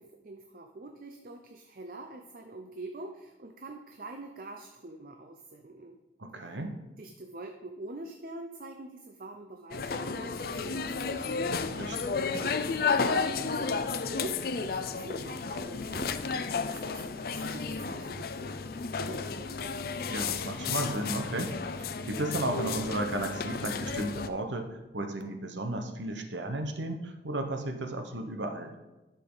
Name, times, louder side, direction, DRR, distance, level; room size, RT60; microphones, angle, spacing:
voice 1, 0.0-6.0 6.4-6.6 7.0-11.4 12.4-19.7, right 2 dB, 50° right, 4 dB, 0.6 m, -45 dB
voice 2, 6.2-6.7 11.8-12.5 20.1-28.8, right 1 dB, 90° right, 6 dB, 1.1 m, -34 dB
sound 1, 9.7-24.3, left 5 dB, 55° left, 0.5 m, -32 dB
12.0 x 6.8 x 3.9 m, 1.0 s
head